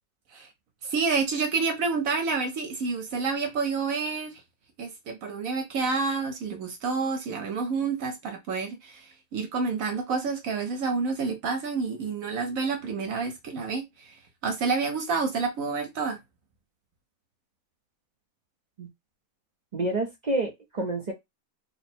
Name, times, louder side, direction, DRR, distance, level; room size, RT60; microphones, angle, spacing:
voice 1, 0.8-4.4 4.8-14.2 14.4-16.2, right 4 dB, 70° right, 1.2 m, -29 dB
voice 2, 19.7-21.1, right 2 dB, 40° right, 0.7 m, -28 dB
3.5 x 2.1 x 4.3 m
omnidirectional pair, 1.5 m